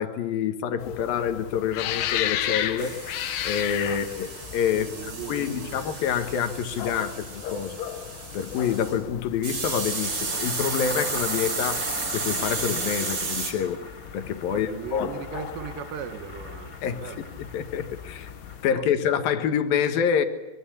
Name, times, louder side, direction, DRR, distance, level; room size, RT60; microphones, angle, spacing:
voice 1, 0.0-3.0 3.4-4.3 4.5-7.8 8.3-11.9 12.1-13.8 14.1-15.2 16.8-17.0 17.4-18.3 18.6-20.2, left 8 dB, 60° left, 8 dB, 2.8 m, -27 dB
sound 1, 0.8-18.7, left 11 dB, 80° left, 3.7 m, -36 dB
sound 2, 2.8-9.0 9.4-13.5, right 4 dB, 45° right, 6.0 m, -33 dB
voice 2, 4.7-5.8 14.5-17.3 18.7-18.9, right 8 dB, 70° right, 9 dB, 3.7 m, -38 dB
sound 3, 9.9-18.6, left 2 dB, 20° left, 3.2 m, -40 dB
25.0 x 22.5 x 8.6 m, 1.1 s
omnidirectional pair, 5.5 m